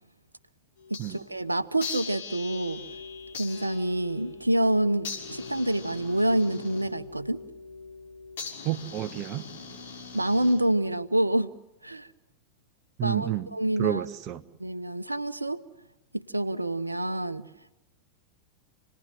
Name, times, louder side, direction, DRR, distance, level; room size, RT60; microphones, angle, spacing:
sound 1, 0.8-1.4 1.8-10.9, left 5 dB, 60° left, 6.0 m, -41 dB
voice 1, 0.9-2.8 3.3-7.4 10.1-11.5 11.8-12.1 13.0-14.0 14.6-15.6 16.1-17.5, right 1 dB, 85° right, 1.0 m, -27 dB
voice 2, 8.6-9.4 13.0-13.5 13.8-14.4, right 13 dB, 35° right, 1.3 m, -30 dB
29.5 x 20.0 x 7.6 m
figure-of-eight pair, 90°, 0 cm